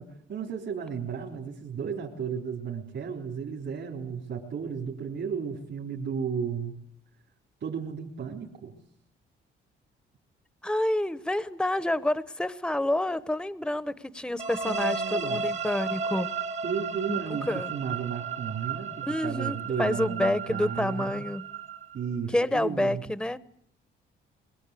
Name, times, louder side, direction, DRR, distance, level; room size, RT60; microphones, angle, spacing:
voice 1, 0.0-6.7 7.6-8.7 14.6-15.5 16.6-21.3 21.9-23.0, right 6 dB, 65° right, -1 dB, 3.8 m, -34 dB
voice 2, 10.6-16.3 17.1-17.2 17.5-17.7 19.1-21.5 22.3-23.4, left 1 dB, 5° left, 15 dB, 0.9 m, -28 dB
sound 1, 14.4-22.2, right 5 dB, 35° right, 1.3 m, -34 dB
23.0 x 22.0 x 8.3 m, 0.74 s
cardioid pair, 90°, 20 cm